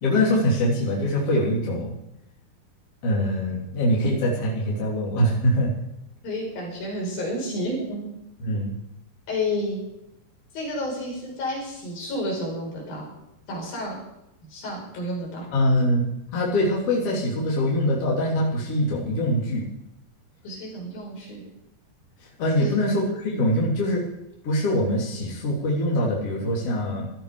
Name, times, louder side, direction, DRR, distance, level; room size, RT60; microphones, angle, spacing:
voice 1, 0.0-1.9 3.0-5.7 8.4-8.8 15.5-16.0 16.3-19.6 22.4-24.0 24.4-27.1, left 1 dB, 40° left, -5 dB, 4.2 m, -23 dB
voice 2, 6.2-8.1 9.3-9.8 10.5-13.1 13.5-14.0 14.4-15.5 20.4-21.4 22.6-22.8, left 1 dB, 70° left, -2 dB, 7.0 m, -30 dB
17.5 x 13.0 x 5.0 m, 0.85 s
omnidirectional pair, 4.3 m